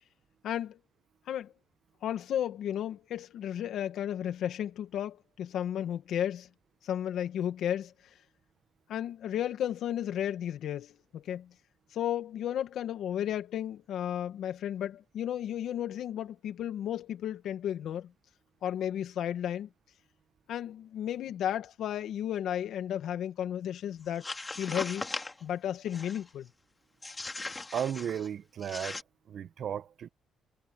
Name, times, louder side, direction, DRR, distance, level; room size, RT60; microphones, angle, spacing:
voice 1, 0.4-0.8 1.3-1.5 2.0-6.5 6.8-7.9 8.9-11.5 11.9-18.1 18.6-19.7 20.5-24.2 24.6-25.1 25.4-26.5, left 10 dB, 75° left, 2.2 m, -33 dB
sound 1, 24.1-25.4 25.9-26.3 27.0-28.3 28.6-29.0, left 3 dB, 20° left, 3.0 m, -39 dB
voice 2, 27.7-29.0 29.3-30.1, right 9 dB, 65° right, 1.3 m, -34 dB
cardioid pair, 90°, 0 cm